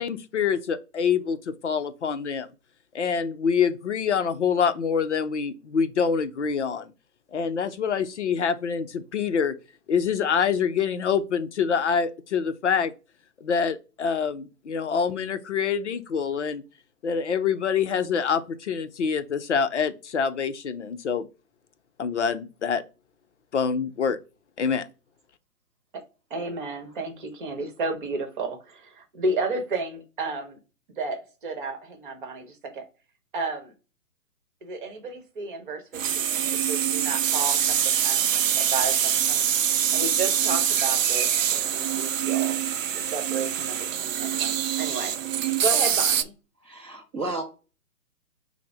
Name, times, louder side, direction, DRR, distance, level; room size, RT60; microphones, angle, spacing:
voice 1, 0.0-2.5 2.9-6.9 7.3-9.5 9.9-12.9 13.4-16.6 17.0-21.2 22.0-22.8 23.5-24.2 24.6-24.9, left 6 dB, 50° left, 0.5 m, -26 dB
voice 2, 26.3-30.6 31.0-32.9 33.3-33.7 34.6-39.5 39.9-42.6 42.9-46.3, right 3 dB, 30° right, 1.0 m, -32 dB
sound 1, 35.9-46.2, right 9 dB, 55° right, 0.5 m, -24 dB
voice 3, 46.6-47.4, right 2 dB, 10° right, 0.6 m, -33 dB
5.9 x 2.1 x 3.4 m
figure-of-eight pair, 135°, 48 cm